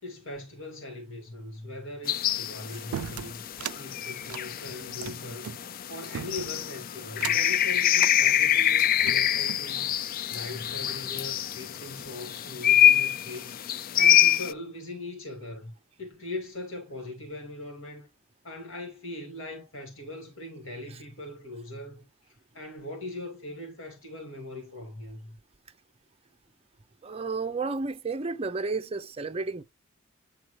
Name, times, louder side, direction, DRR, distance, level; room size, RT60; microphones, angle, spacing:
voice 1, 0.0-3.4 3.7-5.5 5.9-9.9 10.3-15.7 16.0-18.1 18.4-25.4, left 2 dB, 60° left, 2.3 m, -40 dB
sound 1, 2.1-14.5, left 10 dB, 40° left, 0.4 m, -25 dB
sound 2, 2.9-3.8 4.2-5.6 6.1-6.7 7.1-7.5 8.0-8.2 8.8-9.7, right 10 dB, 80° right, 0.3 m, -38 dB
voice 2, 27.0-29.6, right 4 dB, 25° right, 0.6 m, -32 dB
9.2 x 4.0 x 3.2 m
head